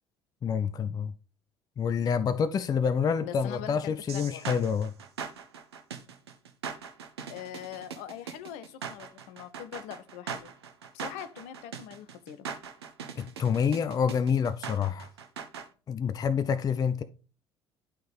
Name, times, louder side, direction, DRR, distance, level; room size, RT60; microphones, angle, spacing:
voice 1, 0.4-1.1 1.8-4.9 13.2-15.1 15.9-17.0, left 6 dB, 30° left, 0.5 m, -27 dB
voice 2, 3.2-4.4 7.3-10.5 10.9-12.5, left 10 dB, 55° left, 0.7 m, -42 dB
sound 1, 4.1-15.7, right 7 dB, 75° right, 0.7 m, -40 dB
11.0 x 3.8 x 3.3 m
figure-of-eight pair, 60°, 14 cm